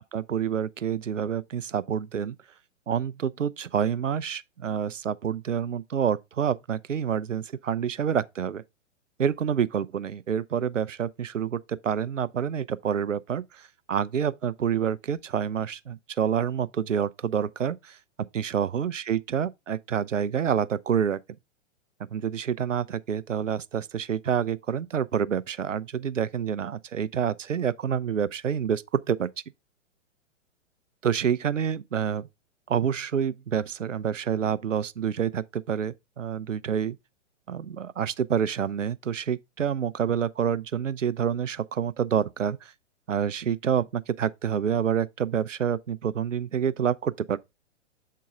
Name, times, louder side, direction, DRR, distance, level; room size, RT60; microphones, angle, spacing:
voice 1, 0.1-2.4 2.9-8.6 9.2-18.0 18.3-21.2 22.1-29.3 31.0-32.3 32.7-37.0 37.5-42.7 43.1-47.4, right 8 dB, 80° right, 0.5 m, -28 dB
7.5 x 4.6 x 3.6 m
figure-of-eight pair, 110°, 37 cm